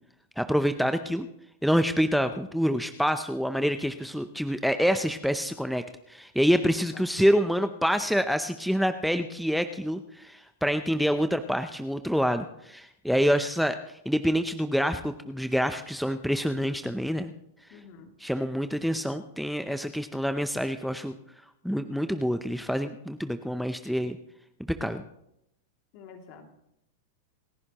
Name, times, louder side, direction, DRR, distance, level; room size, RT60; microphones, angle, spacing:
voice 1, 0.4-1.3 1.6-17.3 18.2-21.1 21.6-24.2 24.7-25.0, equal, ahead, 8 dB, 0.6 m, -27 dB
voice 2, 6.7-7.1 17.7-18.1 25.9-26.5, left 6 dB, 50° left, 4 dB, 2.5 m, -48 dB
28.0 x 10.5 x 3.0 m, 0.79 s
hypercardioid pair, 125°, 0 cm